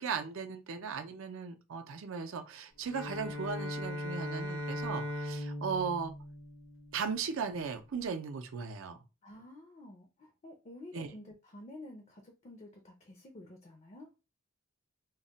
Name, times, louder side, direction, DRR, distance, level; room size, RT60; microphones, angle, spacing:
voice 1, 0.0-6.1 6.9-9.0 10.9-11.1, right 5 dB, 75° right, 0.5 m, -37 dB
Bowed string instrument, 2.8-7.2, left 1 dB, 65° left, 0.8 m, -39 dB
voice 2, 9.2-14.1, left 1 dB, 35° left, 0.4 m, -50 dB
2.3 x 2.1 x 3.8 m
head